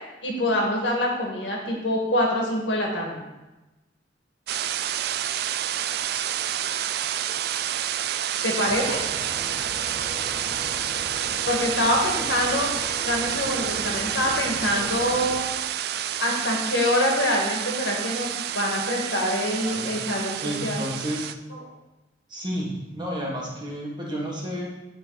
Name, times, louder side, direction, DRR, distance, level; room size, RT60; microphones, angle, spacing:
voice 1, 0.2-3.2 8.4-9.0 11.4-12.7 13.0-15.5 16.2-20.8 21.5-21.6, left 1 dB, 85° left, -1 dB, 1.7 m, -25 dB
sound 1, 4.5-21.3, right 10 dB, 60° right, 0.3 m, -29 dB
sound 2, 8.6-15.4, left 1 dB, ahead, 1.7 m, -39 dB
voice 2, 19.6-19.9 20.4-21.3 22.3-24.7, equal, 25° right, -4 dB, 1.6 m, -31 dB
10.5 x 3.8 x 4.0 m, 1.1 s
head